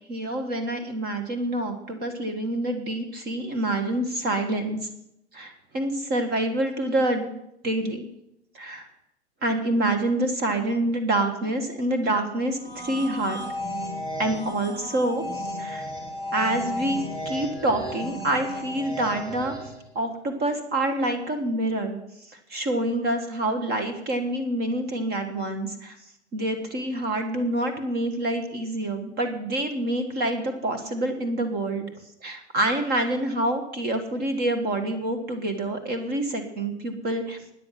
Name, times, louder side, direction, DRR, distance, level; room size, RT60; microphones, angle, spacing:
voice 1, 0.1-4.9 5.3-7.3 7.6-8.1 8.5-8.9 9.4-13.4 14.2-15.9 16.3-19.5 20.0-22.0 22.3-26.0 26.3-31.9 32.2-37.4, right 1 dB, 30° right, 7 dB, 1.8 m, -27 dB
sound 1, 12.5-19.9, equal, 10° right, 4.5 m, -34 dB
13.5 x 9.9 x 6.0 m, 0.81 s
hypercardioid pair, 120°, 34 cm